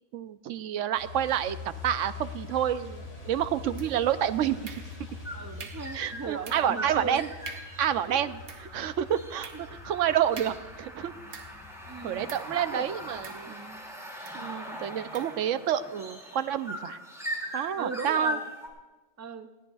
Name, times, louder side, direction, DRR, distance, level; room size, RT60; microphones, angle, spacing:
voice 1, 0.1-1.6 1.8-4.7 5.9-7.3 7.8-9.5 9.8-11.1 12.0-13.5 14.3-17.0 17.5-18.4, right 10 dB, 85° right, 12 dB, 1.0 m, -29 dB
Truck, 0.9-13.2, left 4 dB, 75° left, 2.9 m, -45 dB
sound 1, 2.4-2.8 3.9-18.7, left 1 dB, ahead, 2.5 m, -41 dB
sound 2, 3.8-4.2 4.6-5.2 5.6-6.0 6.4-6.8 7.1-7.2 7.4-7.9 8.3-11.7 12.3-12.6 13.2-13.8 14.2-14.5 15.1-15.4, right 5 dB, 65° right, 1.3 m, -46 dB
voice 2, 5.3-7.2 8.1-8.3 9.5-9.6 11.8-12.9 13.5-13.9 17.8-18.4 19.2-19.5, right 5 dB, 25° right, 8 dB, 0.3 m, -38 dB
20.0 x 17.0 x 2.4 m, 1.2 s
omnidirectional pair, 1.3 m